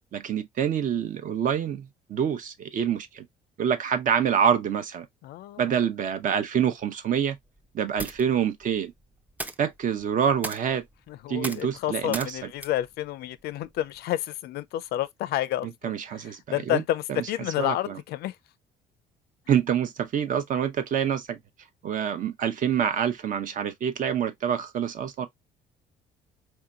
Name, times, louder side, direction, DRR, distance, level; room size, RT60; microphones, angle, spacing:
voice 1, 0.1-3.2 3.6-5.1 5.6-7.4 7.7-8.9 9.6-10.8 11.3-12.3 15.6-16.8 17.1-17.2 17.6-18.0 19.5-21.4 21.8-25.3, right 8 dB, 50° right, 0.8 m, -26 dB
voice 2, 5.2-5.8 11.1-18.3, left 14 dB, 70° left, 0.4 m, -30 dB
sound 1, 7.4-14.1, right 2 dB, 10° right, 0.5 m, -41 dB
4.4 x 2.8 x 2.3 m
cardioid pair, 110°, 17 cm